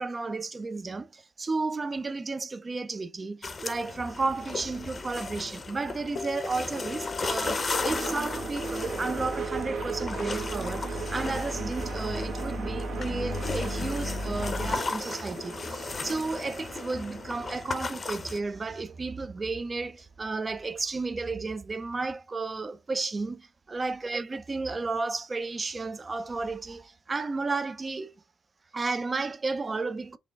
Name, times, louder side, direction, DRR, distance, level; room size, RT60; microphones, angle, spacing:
voice 1, 0.0-28.1 28.7-30.2, right 3 dB, 30° right, 0.5 m, -33 dB
sound 1, 3.4-18.4, left 3 dB, 30° left, 0.7 m, -36 dB
sound 2, 4.6-5.8 6.1-14.8, left 2 dB, 65° left, 0.9 m, -38 dB
sound 3, 7.4-19.5, right 5 dB, 65° right, 1.1 m, -38 dB
4.1 x 2.4 x 3.5 m
cardioid pair, 90°, 0 cm